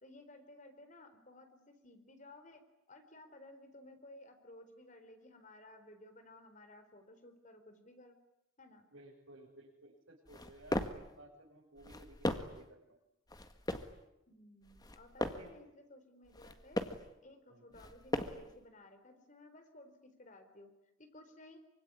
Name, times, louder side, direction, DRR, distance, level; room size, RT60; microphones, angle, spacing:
voice 1, 0.0-2.6 2.9-8.2 8.6-8.9 14.3-16.8 17.2-20.7 21.0-21.6, left 1 dB, 40° left, 7 dB, 4.1 m, -57 dB
voice 2, 8.9-13.0 15.2-15.5 17.5-17.8, right 1 dB, 85° right, -4 dB, 6.3 m, -57 dB
sound 1, 10.3-11.1 11.8-12.6 13.3-14.0 14.7-15.5 16.3-17.1 17.7-18.5, left 1 dB, 20° left, 1.7 m, -38 dB
25.0 x 24.0 x 9.9 m, 0.87 s
head